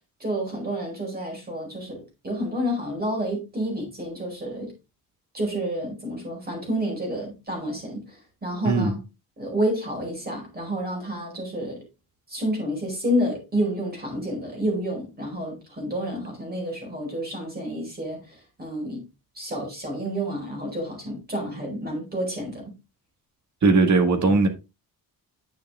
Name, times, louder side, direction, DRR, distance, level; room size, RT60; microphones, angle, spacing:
voice 1, 0.2-4.7 5.3-9.0 9.4-11.8 12.3-19.0 19.3-22.7, equal, 25° right, 4.6 m, -29 dB
voice 2, 23.6-24.5, right 3 dB, 50° right, 1.9 m, -19 dB
9.7 x 6.7 x 3.7 m
wide cardioid pair, 165°, 36 cm